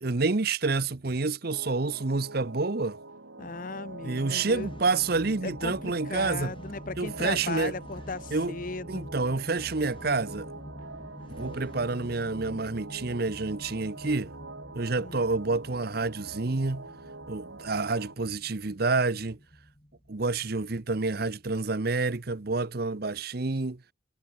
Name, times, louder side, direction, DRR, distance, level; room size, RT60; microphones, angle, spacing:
voice 1, 0.0-3.0 4.0-6.5 7.0-7.7 8.3-8.6 8.9-10.5 11.4-14.3 14.7-16.9 17.3-19.4 20.1-23.8, right 3 dB, 50° right, 0.8 m, -28 dB
sound 1, 1.5-18.2, right 3 dB, 75° right, 3.0 m, -45 dB
voice 2, 3.4-4.7 5.4-9.1 15.0-15.2, left 3 dB, 45° left, 0.8 m, -37 dB
sound 2, 3.4-22.6, equal, 25° left, 5.6 m, -47 dB
head